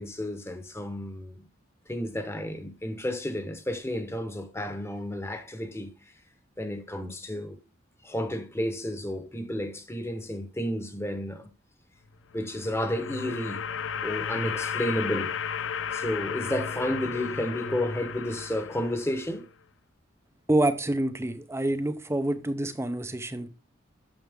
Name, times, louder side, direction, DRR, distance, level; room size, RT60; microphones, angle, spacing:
voice 1, 0.0-1.3 1.9-5.9 6.6-7.6 8.0-11.5 12.3-13.6 14.0-15.3 15.9-19.4, left 1 dB, 15° left, 1.2 m, -31 dB
sound 1, 12.3-19.4, left 7 dB, 70° left, 0.5 m, -34 dB
voice 2, 20.5-23.5, right 1 dB, 15° right, 0.7 m, -27 dB
9.2 x 7.1 x 3.6 m
head